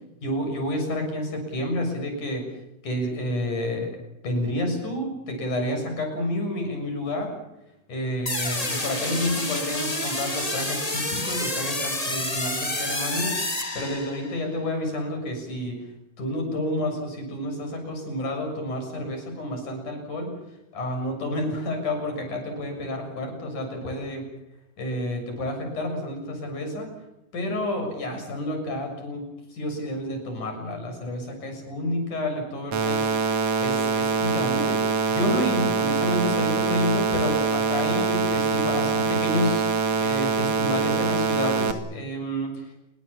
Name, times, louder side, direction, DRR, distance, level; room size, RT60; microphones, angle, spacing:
voice 1, 0.2-2.4 2.8-3.9 4.2-7.4 7.9-15.8 16.2-20.3 20.7-24.3 24.8-26.9 27.3-33.1 33.6-39.6 40.0-42.7, left 1 dB, 75° left, 5 dB, 8.3 m, -29 dB
sound 1, 8.3-14.4, left 1 dB, 10° left, 2.7 m, -29 dB
sound 2, 32.7-41.7, right 5 dB, 60° right, 3.0 m, -24 dB
29.0 x 22.5 x 7.3 m, 0.89 s
omnidirectional pair, 3.6 m